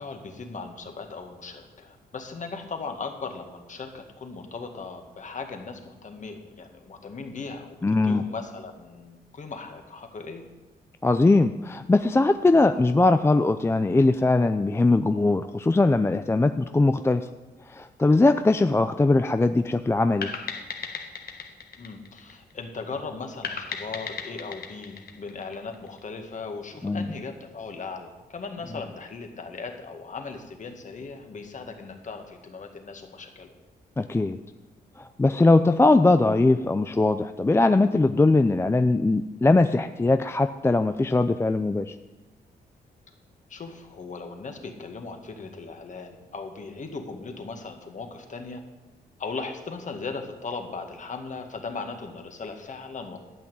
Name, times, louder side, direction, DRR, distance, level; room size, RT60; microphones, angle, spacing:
voice 1, 0.0-10.4 21.8-33.5 43.5-48.6 49.2-53.2, left 4 dB, 45° left, 4 dB, 1.9 m, -38 dB
voice 2, 7.8-8.2 11.0-17.3 17.7-20.3 26.8-27.1 34.0-34.4 35.0-41.9, left 2 dB, 15° left, 9 dB, 0.4 m, -21 dB
sound 1, 20.2-22.8 23.4-26.0, left 5 dB, 65° left, 1.5 m, -36 dB
12.0 x 6.0 x 9.3 m, 1.1 s
cardioid pair, 90°, 17 cm